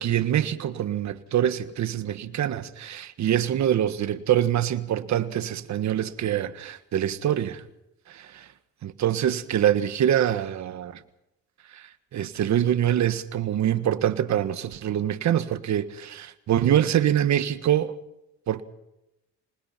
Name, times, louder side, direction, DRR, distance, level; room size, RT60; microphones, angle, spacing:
voice 1, 0.0-7.6 8.1-8.5 8.8-11.0 11.7-11.8 12.1-17.9 18.5-18.6, right 10 dB, 65° right, 1.6 m, -25 dB
26.0 x 20.5 x 5.9 m
cardioid pair, 90°, 30 cm